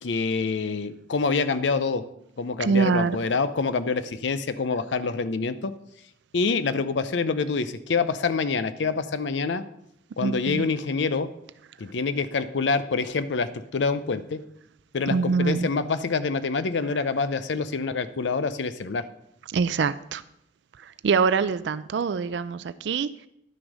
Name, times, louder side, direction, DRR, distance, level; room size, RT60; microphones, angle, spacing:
voice 1, 0.0-2.0 2.4-5.7 6.3-9.6 10.2-11.3 11.8-14.4 14.9-19.0, left 4 dB, 75° left, 13 dB, 0.6 m, -26 dB
voice 2, 2.6-3.2 10.2-10.7 15.1-15.7 19.5-20.2 20.8-23.3, right 5 dB, 65° right, 15 dB, 0.4 m, -25 dB
11.0 x 6.2 x 4.9 m, 0.78 s
head